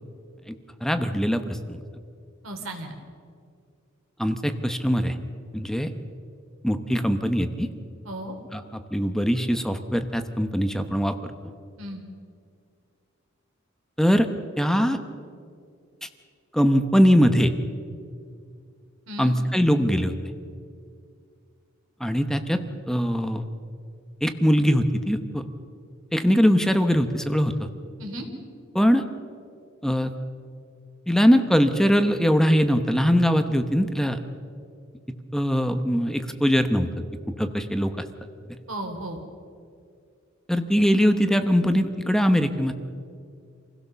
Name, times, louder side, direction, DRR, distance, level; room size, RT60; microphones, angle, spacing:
voice 1, 0.8-1.8 4.2-5.1 5.5-5.9 6.6-7.7 8.5-8.6 8.9-11.3 14.0-14.3 14.6-15.0 16.0-16.1 16.5-17.5 19.2-20.1 22.0-22.6 22.9-23.4 24.2-25.4 26.1-27.5 28.7-29.0 29.8-30.1 31.1-34.2 35.3-36.9 37.4-37.9 40.5-42.7, equal, ahead, 8 dB, 0.9 m, -21 dB
voice 2, 2.4-2.9 8.0-8.3 11.8-12.0 19.1-19.3 28.0-28.3 38.7-39.2, right 1 dB, 80° right, 4 dB, 3.3 m, -35 dB
26.5 x 16.5 x 6.8 m, 2.3 s
head